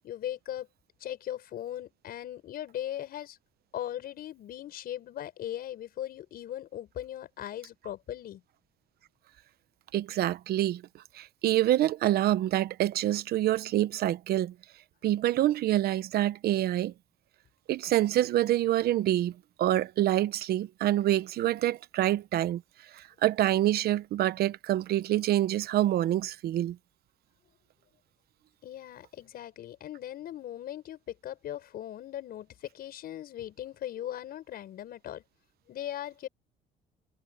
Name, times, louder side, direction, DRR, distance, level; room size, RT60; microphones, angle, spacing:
voice 1, 0.0-0.7 1.0-3.4 3.7-8.4 28.6-35.2 35.7-36.3, left 11 dB, 65° left, 6.3 m, -39 dB
voice 2, 9.9-10.8 11.2-14.5 15.0-16.9 17.7-19.3 19.6-22.6 23.2-26.8, right 13 dB, 65° right, 1.0 m, -26 dB
cardioid pair, 110°, 17 cm